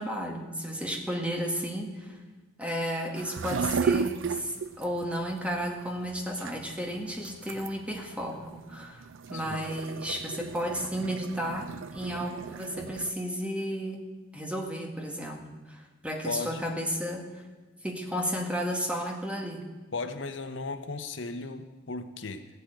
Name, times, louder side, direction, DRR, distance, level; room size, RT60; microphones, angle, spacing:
voice 1, 0.0-2.2 2.6-14.0 14.3-15.4 15.7-17.3 17.8-19.6, equal, 5° right, 2 dB, 1.9 m, -33 dB
sound 1, 3.2-13.1, right 6 dB, 75° right, 0.5 m, -35 dB
voice 2, 16.2-16.7 19.9-22.5, left 3 dB, 75° left, 9 dB, 1.0 m, -36 dB
15.0 x 8.3 x 9.1 m, 1.2 s
head